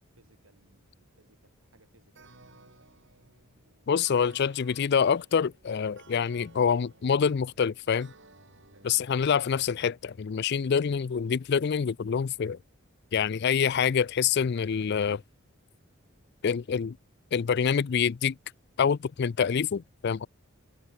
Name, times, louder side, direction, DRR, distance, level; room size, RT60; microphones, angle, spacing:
voice 1, 0.1-2.9 8.7-9.0 10.8-11.1, right 2 dB, 80° right, 6.2 m, -64 dB
sound 1, 2.1-9.8, right 3 dB, 60° right, 7.0 m, -57 dB
voice 2, 3.9-8.1 8.8-12.6 13.1-15.2 16.4-17.0 17.3-18.4 18.8-20.3, left 7 dB, 50° left, 0.4 m, -26 dB
head